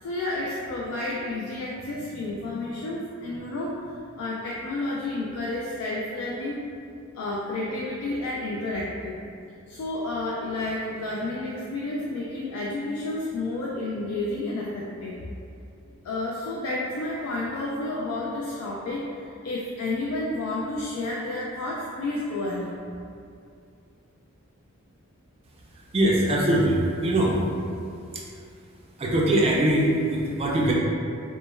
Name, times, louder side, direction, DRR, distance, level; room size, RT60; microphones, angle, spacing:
voice 1, 0.0-6.6 7.1-9.2 9.7-15.2 16.0-22.7, left 2 dB, 85° left, -4 dB, 0.3 m, -31 dB
voice 2, 25.9-27.4 28.1-28.2 29.0-30.7, right 1 dB, 25° right, -3 dB, 0.3 m, -22 dB
2.1 x 2.1 x 3.0 m, 2.4 s
head